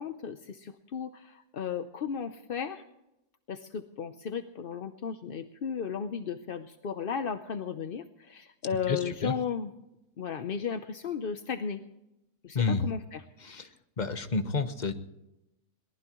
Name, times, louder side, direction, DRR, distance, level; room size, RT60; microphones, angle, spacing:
voice 1, 0.0-2.8 3.5-9.7 10.2-11.8 12.4-13.2, left 7 dB, 50° left, 9 dB, 0.7 m, -35 dB
voice 2, 8.9-9.4 12.5-12.8 13.4-13.7 14.0-14.9, left 4 dB, 30° left, 8 dB, 1.1 m, -29 dB
22.0 x 19.0 x 3.1 m, 0.89 s
omnidirectional pair, 1.7 m